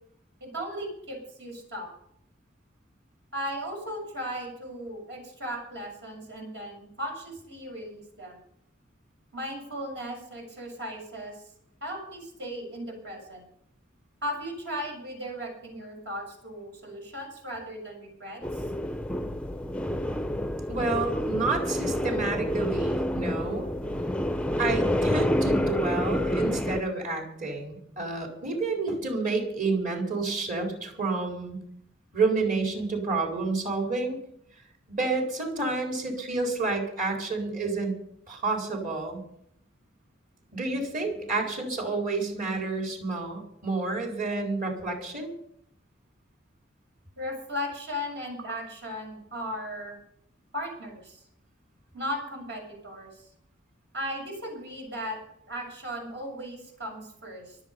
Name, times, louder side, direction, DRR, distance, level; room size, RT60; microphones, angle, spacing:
voice 1, 0.4-1.9 3.3-8.4 9.3-11.4 11.8-13.4 14.2-18.6 47.2-50.0 50.5-51.2 51.9-53.3 53.9-55.2 55.5-57.6, equal, 65° right, 1 dB, 6.9 m, -36 dB
sound 1, 18.4-26.8, left 1 dB, 5° left, 0.5 m, -28 dB
voice 2, 20.7-23.7 24.6-31.6 32.1-34.2 34.9-37.9 38.3-39.2 40.5-45.3, right 3 dB, 45° right, 0 dB, 4.5 m, -29 dB
24.5 x 8.3 x 5.5 m, 0.72 s
head